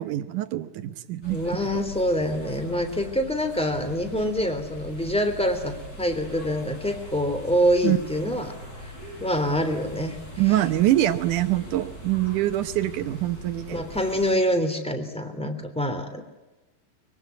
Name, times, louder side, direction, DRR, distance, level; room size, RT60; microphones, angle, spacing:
voice 1, 0.0-1.4 7.8-8.0 10.4-13.8, right 14 dB, 70° right, 10 dB, 2.4 m, -24 dB
sound 1, 1.2-14.3, equal, 25° left, 6.8 m, -41 dB
voice 2, 1.3-8.5 8.8-8.9 9.2-10.2 13.7-16.2, equal, ahead, 8 dB, 2.6 m, -25 dB
24.0 x 23.5 x 9.4 m, 1.1 s
omnidirectional pair, 3.9 m